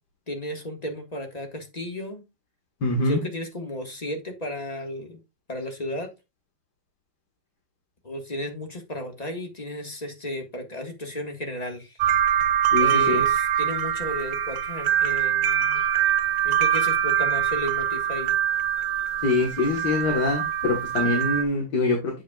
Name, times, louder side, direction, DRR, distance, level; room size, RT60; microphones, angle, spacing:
voice 1, 0.3-2.2 3.0-5.2 5.5-6.1 8.0-12.0 12.8-15.8 16.4-18.3, equal, 25° left, 3 dB, 1.5 m, -34 dB
voice 2, 2.8-3.2 12.7-13.2 19.2-22.2, left 3 dB, 75° left, 2 dB, 2.0 m, -24 dB
sound 1, 12.0-21.4, right 10 dB, 85° right, 1.3 m, -24 dB
8.1 x 7.4 x 2.3 m, 0.24 s
omnidirectional pair, 1.8 m